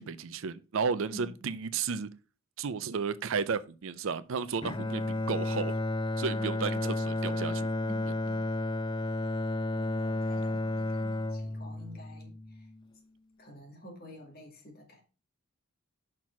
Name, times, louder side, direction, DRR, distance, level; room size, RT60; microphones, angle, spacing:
voice 1, 0.0-2.1 2.6-5.0 5.3-5.8 6.2-7.7, right 5 dB, 60° right, 0.5 m, -33 dB
voice 2, 1.1-1.5 6.3-6.8 7.8-8.5 9.7-12.7 13.4-15.0, right 1 dB, 45° left, 2.2 m, -49 dB
Bowed string instrument, 4.6-12.8, left 2 dB, 20° left, 0.3 m, -32 dB
6.1 x 4.5 x 5.7 m
head